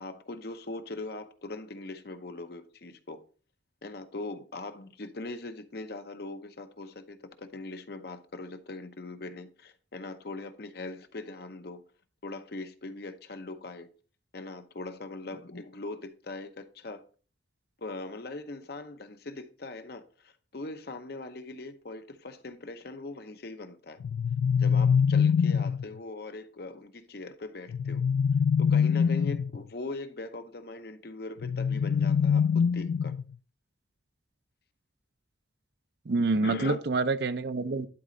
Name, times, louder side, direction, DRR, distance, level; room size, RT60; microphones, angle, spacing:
voice 1, 0.0-3.2 3.8-11.8 12.2-13.9 14.3-17.0 17.8-24.0 24.6-28.0 28.6-33.1 36.4-36.8, left 2 dB, 55° left, 0.7 m, -41 dB
sound 1, 24.0-25.8 27.7-29.6 31.4-33.3, left 6 dB, 90° left, 0.3 m, -24 dB
voice 2, 36.1-37.9, right 3 dB, 55° right, 0.5 m, -27 dB
11.5 x 4.2 x 3.8 m
head